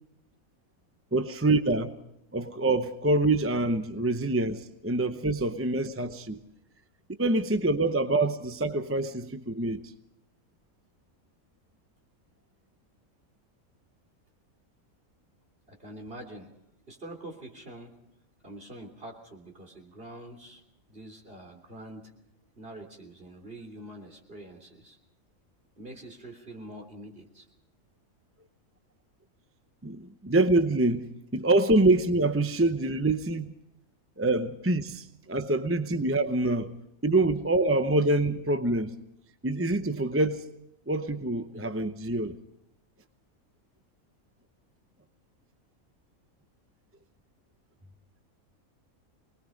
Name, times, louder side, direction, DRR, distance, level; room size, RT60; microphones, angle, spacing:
voice 1, 1.1-2.0 2.3-6.4 7.2-9.9 29.8-31.1 31.3-33.5 34.2-36.7 37.0-39.0 39.4-40.5 40.9-42.4, right 2 dB, 15° right, 0.5 m, -25 dB
voice 2, 15.7-16.5 16.9-17.9 18.4-20.6 20.9-22.1 22.6-25.0 25.8-27.5, right 1 dB, 40° right, 3.7 m, -45 dB
24.5 x 20.5 x 5.2 m
omnidirectional pair, 1.5 m